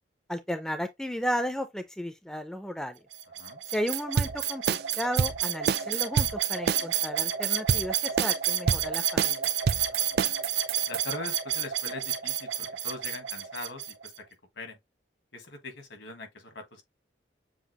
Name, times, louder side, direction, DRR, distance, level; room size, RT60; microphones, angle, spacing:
voice 1, 0.3-3.0 3.7-9.5, equal, 5° left, 0.4 m, -34 dB
sound 1, 3.1-14.2, right 9 dB, 85° right, 1.0 m, -31 dB
sound 2, 3.9-11.0, right 6 dB, 55° right, 0.3 m, -28 dB
voice 2, 9.9-10.3 10.9-14.1 14.6-14.8 15.3-16.8, left 2 dB, 75° left, 1.6 m, -42 dB
7.1 x 2.5 x 2.9 m
head